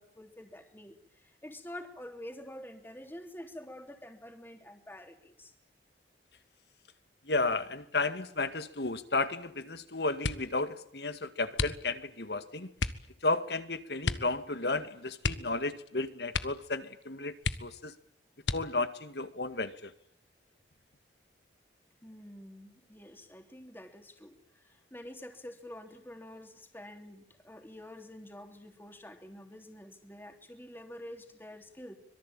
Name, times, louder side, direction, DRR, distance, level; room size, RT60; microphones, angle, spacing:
voice 1, 0.0-5.5 22.0-32.0, left 1 dB, 10° left, 5 dB, 3.4 m, -48 dB
voice 2, 7.3-12.7 13.2-17.9 18.5-19.9, left 3 dB, 70° left, 12 dB, 2.1 m, -33 dB
sound 1, 10.2-10.6 11.5-12.2 12.8-13.1 14.0-14.4 14.6-14.7 15.2-15.9 16.3-16.7 17.0-17.1 17.4-17.9 18.4-19.0 19.7-20.3 20.7-21.1, left 4 dB, 90° left, 1.6 m, -34 dB
25.5 x 23.0 x 8.9 m, 0.65 s
head